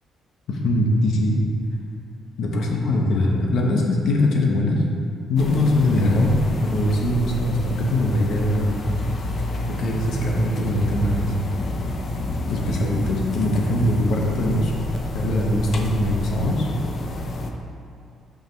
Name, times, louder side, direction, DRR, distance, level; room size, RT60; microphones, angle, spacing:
voice 1, 0.5-1.4 2.4-4.8 5.3-8.9 9.7-11.3 12.5-14.7 15.1-16.7, left 1 dB, 65° left, -1 dB, 1.1 m, -21 dB
sound 1, 5.4-17.5, left 1 dB, 45° left, 0.7 m, -29 dB
6.3 x 4.8 x 5.8 m, 2.5 s
cardioid pair, 125°, 0 cm